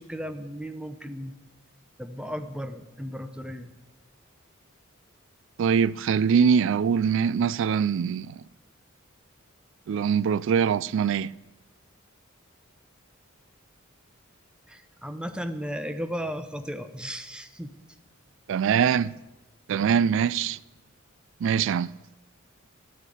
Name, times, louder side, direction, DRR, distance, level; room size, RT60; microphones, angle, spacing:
voice 1, 0.0-1.3 2.0-3.7 14.7-17.7, equal, 5° right, 0.8 m, -35 dB
voice 2, 5.6-8.4 9.9-11.3 18.5-19.1 19.7-20.6 21.4-21.9, right 7 dB, 65° right, 0.3 m, -23 dB
11.0 x 9.0 x 8.5 m
head